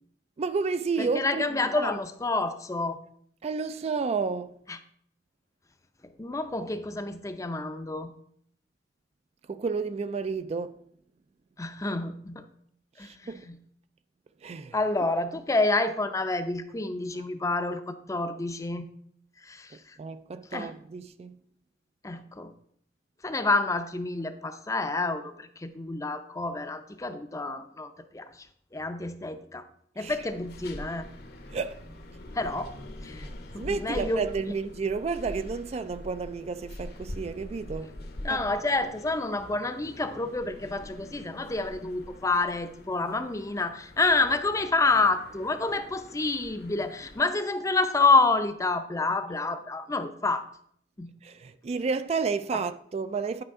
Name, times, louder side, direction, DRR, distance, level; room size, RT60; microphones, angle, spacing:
voice 1, 0.4-1.9 3.4-4.6 9.5-10.7 13.0-13.4 14.4-14.8 20.0-21.4 30.0-30.2 31.5-31.8 33.2-37.9 38.3-38.4 51.2-53.4, right 4 dB, 35° right, 0.3 m, -31 dB
voice 2, 1.0-3.0 4.7-4.8 6.0-8.1 11.6-12.4 13.0-13.6 14.7-18.8 19.4-20.0 20.5-20.7 22.0-22.5 23.2-28.5 28.7-29.7 30.0-31.1 32.3-32.7 33.0-33.2 33.5-34.3 38.2-50.5 51.0-51.1 52.5-52.6, left 3 dB, 20° left, 0.5 m, -28 dB
sound 1, 30.1-47.2, left 1 dB, 60° left, 0.9 m, -44 dB
10.0 x 5.0 x 3.6 m
head